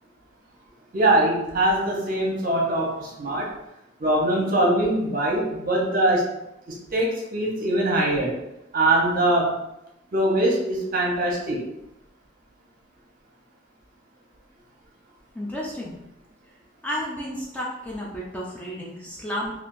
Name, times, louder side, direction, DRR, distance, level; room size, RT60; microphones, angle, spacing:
voice 1, 0.9-3.5 4.0-6.3 6.7-8.3 8.7-9.6 10.1-11.6, right 1 dB, 50° right, -2 dB, 0.8 m, -22 dB
voice 2, 15.4-15.9 16.8-19.5, equal, 10° left, -4 dB, 0.4 m, -32 dB
3.4 x 2.4 x 2.6 m, 0.88 s
head